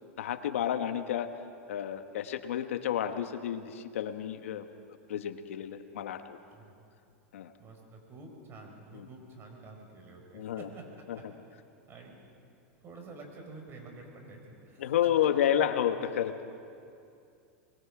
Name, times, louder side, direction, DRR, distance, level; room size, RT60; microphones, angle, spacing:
voice 1, 0.2-1.3 1.7-4.7 5.1-6.4 7.3-7.5 8.9-9.1 10.3-10.7 11.1-11.2 14.8-16.4, left 10 dB, 85° left, 9 dB, 1.2 m, -30 dB
voice 2, 7.6-10.8 11.2-11.3 11.9-12.1 12.8-14.9, right 3 dB, 35° right, 2 dB, 5.0 m, -49 dB
25.5 x 22.0 x 5.0 m, 2.5 s
supercardioid pair, 120°, 7 cm